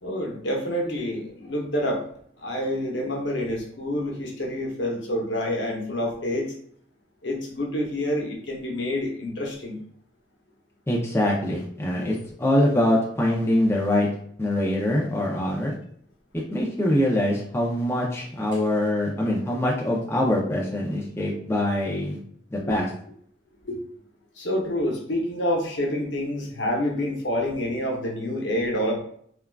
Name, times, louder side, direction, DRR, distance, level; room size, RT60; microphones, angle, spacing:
voice 1, 0.0-2.0 2.4-6.5 7.2-9.8 22.6-22.7 23.6-23.8 24.4-29.0, left 1 dB, 85° left, 0 dB, 0.8 m, -27 dB
voice 2, 10.9-14.1 14.4-15.7 16.5-22.2 22.5-22.9, left 1 dB, 15° left, -3 dB, 0.5 m, -24 dB
3.4 x 2.3 x 2.3 m, 0.63 s
head